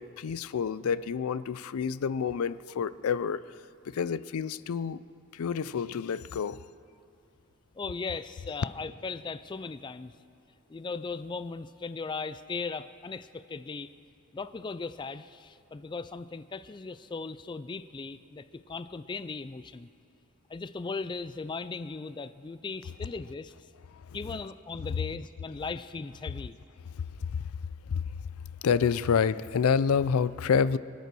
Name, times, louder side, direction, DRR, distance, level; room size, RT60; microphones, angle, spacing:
voice 1, 0.0-3.4 3.9-5.0 5.3-6.6 27.9-28.0 28.6-30.8, left 6 dB, 85° left, 0.4 m, -28 dB
voice 2, 7.7-10.1 10.7-13.9 14.3-19.9 20.5-23.7 24.1-26.6, left 4 dB, 20° left, 0.3 m, -38 dB
24.0 x 8.3 x 6.1 m
head